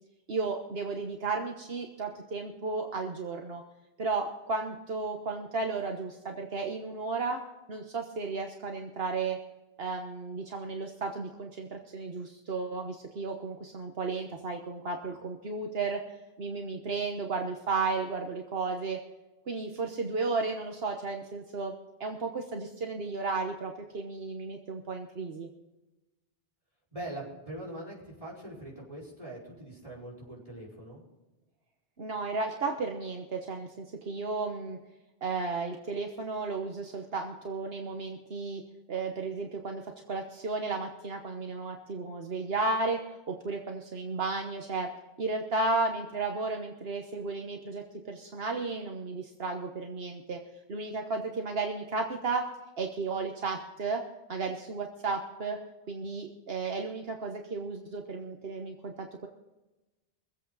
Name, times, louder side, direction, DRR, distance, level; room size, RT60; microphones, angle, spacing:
voice 1, 0.3-3.6 4.0-7.4 7.7-9.4 9.8-16.0 16.4-19.0 19.5-21.7 22.0-25.5 32.0-34.8 35.2-38.6 38.9-39.8 40.1-44.9 45.2-50.4 50.7-52.5 52.8-54.0 54.3-55.6 55.9-59.3, right 3 dB, 75° right, 3 dB, 1.4 m, -33 dB
voice 2, 26.9-31.0, right 1 dB, 35° right, -5 dB, 4.9 m, -42 dB
24.5 x 8.2 x 4.0 m, 1.1 s
omnidirectional pair, 1.0 m